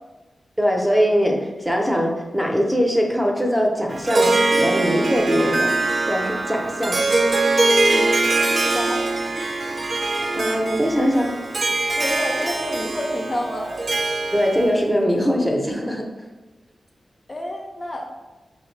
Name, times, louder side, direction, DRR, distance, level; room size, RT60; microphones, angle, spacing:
voice 1, 0.6-5.7 6.1-7.0 10.4-11.4 14.3-16.1, equal, 5° right, 0 dB, 0.7 m, -21 dB
Harp, 3.9-14.8, right 2 dB, 55° right, 0.5 m, -22 dB
voice 2, 7.8-9.0 12.0-13.7 17.3-18.1, left 1 dB, 45° left, 1 dB, 0.5 m, -29 dB
5.2 x 2.1 x 3.2 m, 1.1 s
cardioid pair, 55°, 0 cm